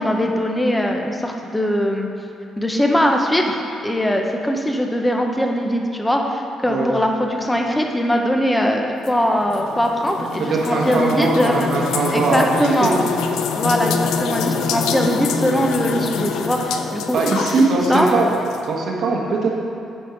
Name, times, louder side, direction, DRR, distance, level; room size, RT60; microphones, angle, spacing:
voice 1, 0.0-2.1 2.6-11.7 12.1-13.0 13.6-17.5 17.9-18.1, equal, 10° left, 2 dB, 0.8 m, -21 dB
sound 1, 9.0-18.7, left 6 dB, 90° left, 0.4 m, -26 dB
voice 2, 10.5-12.9 17.1-18.3 18.7-19.5, right 3 dB, 70° right, -1 dB, 1.3 m, -20 dB
8.6 x 4.4 x 5.1 m, 2.7 s
cardioid pair, 90°, 0 cm